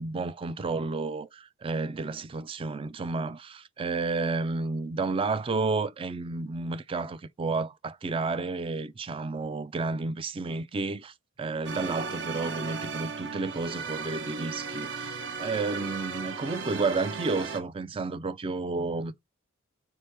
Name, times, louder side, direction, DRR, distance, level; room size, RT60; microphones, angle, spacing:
voice 1, 0.0-19.1, right 3 dB, 25° right, 0.3 m, -31 dB
sound 1, 11.6-17.6, right 5 dB, 60° right, 0.9 m, -36 dB
4.4 x 2.8 x 3.3 m
head